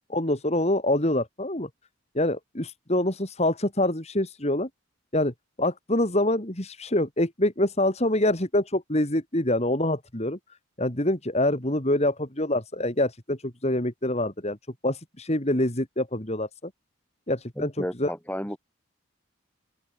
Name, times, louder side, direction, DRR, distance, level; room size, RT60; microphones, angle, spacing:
voice 1, 0.1-1.7 2.1-4.7 5.1-10.4 10.8-14.6 14.8-16.5 17.3-18.1, left 1 dB, 30° left, 2.9 m, -25 dB
voice 2, 17.6-18.6, equal, 5° left, 4.3 m, -32 dB
open air
head